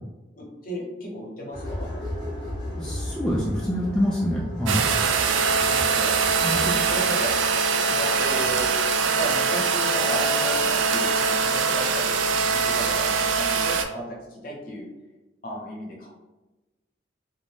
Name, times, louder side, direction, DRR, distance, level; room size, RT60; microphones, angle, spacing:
voice 1, 0.4-1.9 5.0-5.1 5.7-6.2 6.5-6.6 6.9-7.3 7.8-8.7 9.1-12.1 12.5-14.9 15.4-16.1, equal, 50° left, -3 dB, 0.8 m, -34 dB
sound 1, 1.5-7.4, left 1 dB, 20° left, 0.8 m, -35 dB
voice 2, 2.8-4.9 6.4-6.7, equal, 5° left, -6 dB, 0.3 m, -26 dB
sound 2, 4.7-13.8, right 5 dB, 85° right, 0.3 m, -23 dB
2.5 x 2.1 x 3.2 m, 1.1 s
head